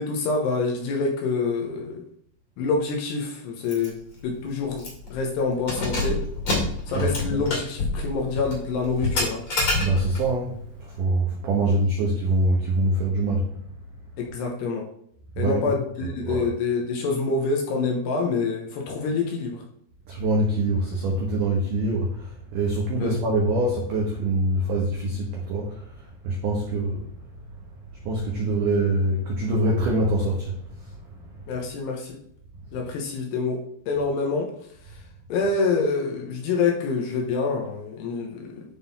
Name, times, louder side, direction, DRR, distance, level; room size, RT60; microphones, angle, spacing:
voice 1, 0.0-2.0 2.6-6.3 6.9-9.4 11.6-11.8 14.2-14.9 15.4-19.6 23.0-23.2 31.5-32.2 32.7-34.5 34.9-35.0 35.3-38.6, left 4 dB, 75° left, 0 dB, 2.8 m, -26 dB
Keys jangling, 3.7-3.9 4.2-4.3 4.8-5.1 5.6-10.3, left 2 dB, 35° left, 2.4 m, -27 dB
voice 2, 6.9-7.4 9.8-13.5 15.4-15.7 16.0-16.5 20.1-25.8 26.2-27.0 28.0-30.6, right 2 dB, 80° right, -1 dB, 1.8 m, -24 dB
11.5 x 3.9 x 4.2 m, 0.68 s
omnidirectional pair, 5.6 m